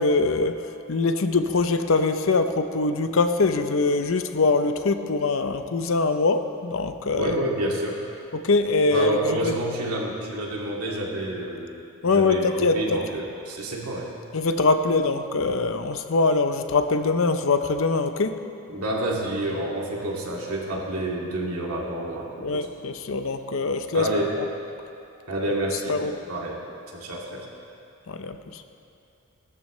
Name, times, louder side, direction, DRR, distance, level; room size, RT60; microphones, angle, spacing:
voice 1, 0.0-7.3 8.3-9.5 12.0-13.0 14.3-18.4 22.4-24.1 25.9-26.2 28.1-28.6, left 3 dB, 65° left, 9 dB, 0.7 m, -23 dB
voice 2, 7.1-8.0 8.9-11.8 12.1-14.1 18.7-22.7 23.9-24.3 25.3-26.0 26.3-26.6 26.9-27.5, right 1 dB, 90° right, -3 dB, 2.3 m, -28 dB
19.0 x 13.0 x 3.2 m, 2.6 s
head